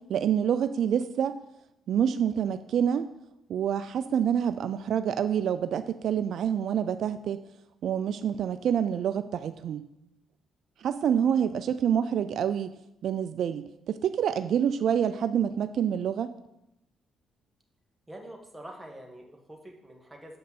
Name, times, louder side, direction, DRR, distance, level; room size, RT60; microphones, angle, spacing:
voice 1, 0.0-1.4 1.9-3.1 3.5-7.4 7.8-9.8 10.8-12.7 13.0-16.3, right 8 dB, 70° right, 12 dB, 0.3 m, -27 dB
voice 2, 11.2-11.7 18.1-20.4, right 1 dB, 10° right, 1 dB, 1.7 m, -46 dB
7.7 x 5.3 x 5.9 m, 0.86 s
cardioid pair, 90°, 0 cm